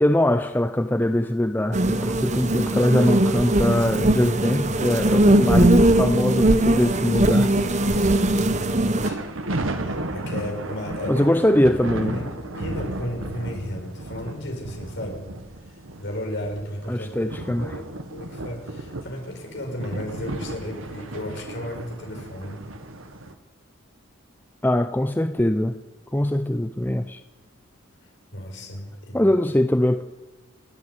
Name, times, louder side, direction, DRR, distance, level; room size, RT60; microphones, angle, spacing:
voice 1, 0.0-7.7 11.1-12.3 16.9-17.8 24.6-25.7 26.1-27.2 29.1-30.0, left 1 dB, 10° left, 9 dB, 0.6 m, -22 dB
sound 1, 1.7-9.1, right 1 dB, 35° right, 1.1 m, -20 dB
voice 2, 8.4-9.3 9.8-11.2 11.8-15.3 16.0-22.6 28.0-29.3, left 1 dB, 55° left, 1 dB, 5.9 m, -34 dB
sound 2, 9.0-23.3, right 1 dB, 75° right, 1.6 m, -34 dB
29.0 x 9.6 x 9.9 m, 1.2 s
head